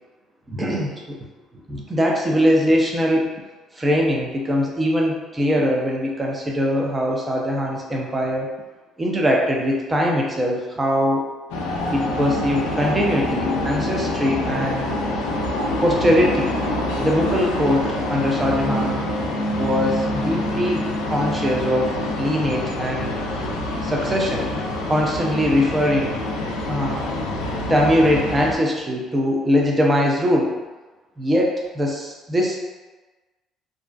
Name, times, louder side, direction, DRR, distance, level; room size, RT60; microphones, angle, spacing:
voice 1, 0.5-1.2 1.7-3.3 3.8-8.5 9.0-11.3 11.9-14.9 15.8-16.5 17.0-19.0 19.6-23.1 23.8-24.5 24.9-26.1 26.7-27.0 27.7-30.5 31.2-32.6, equal, 20° right, -1 dB, 0.5 m, -21 dB
sound 1, 11.5-28.5, left 1 dB, 90° left, 0.3 m, -26 dB
2.4 x 2.1 x 2.4 m, 1.2 s
supercardioid pair, 80°, 0 cm